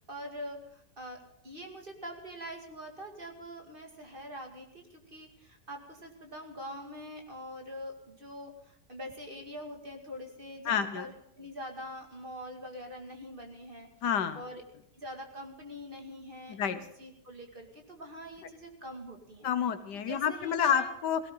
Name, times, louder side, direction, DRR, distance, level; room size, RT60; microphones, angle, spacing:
voice 1, 0.0-13.9 14.3-14.6 14.9-19.5 19.9-20.9, equal, 30° right, 2 dB, 2.4 m, -44 dB
voice 2, 10.6-11.1 14.0-14.4 16.5-16.8 19.4-21.2, left 8 dB, 75° left, 11 dB, 1.6 m, -29 dB
17.5 x 16.5 x 3.9 m, 0.78 s
omnidirectional pair, 1.8 m